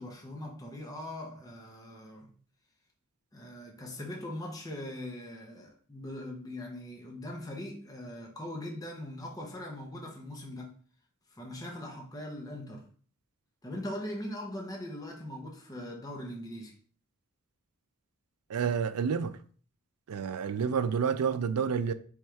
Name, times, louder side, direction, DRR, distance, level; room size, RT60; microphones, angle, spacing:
voice 1, 0.0-2.3 3.3-10.8 11.3-12.9 13.6-16.7, left 1 dB, 15° left, 0.7 m, -41 dB
voice 2, 18.5-19.4 20.1-21.9, right 6 dB, 75° right, 0.4 m, -29 dB
3.6 x 3.2 x 4.5 m
head